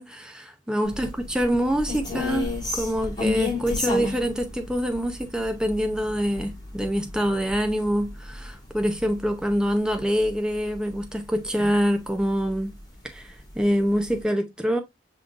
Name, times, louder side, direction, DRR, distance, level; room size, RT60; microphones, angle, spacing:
voice 1, 0.0-12.7 13.0-14.8, equal, 5° right, 0.7 m, -25 dB
roomtone-classroom, 0.9-11.3 11.6-11.8 12.2-13.0 13.4-13.5 13.8-14.2, left 3 dB, 25° left, 2.9 m, -33 dB
5.5 x 3.7 x 2.4 m
head